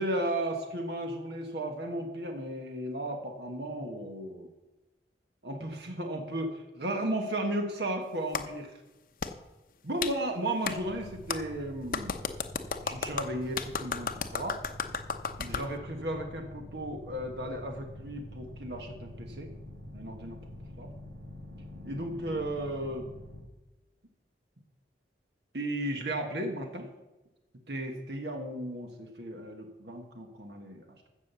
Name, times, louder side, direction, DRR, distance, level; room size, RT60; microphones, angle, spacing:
voice 1, 0.0-4.5 5.4-8.7 9.8-12.1 12.8-14.6 15.4-19.5 19.9-20.4 20.8-20.9 21.8-23.1 25.5-26.9 27.7-31.1, right 1 dB, 65° right, 3 dB, 1.4 m, -35 dB
Clapping, 8.3-8.5 9.2-9.3 10.0-10.1 10.7-10.8 11.3-11.4 11.9-15.7, left 5 dB, 50° left, 0.8 m, -33 dB
sound 1, 10.7-23.4, left 1 dB, 85° right, 1.7 m, -47 dB
15.0 x 5.9 x 7.0 m, 1.1 s
head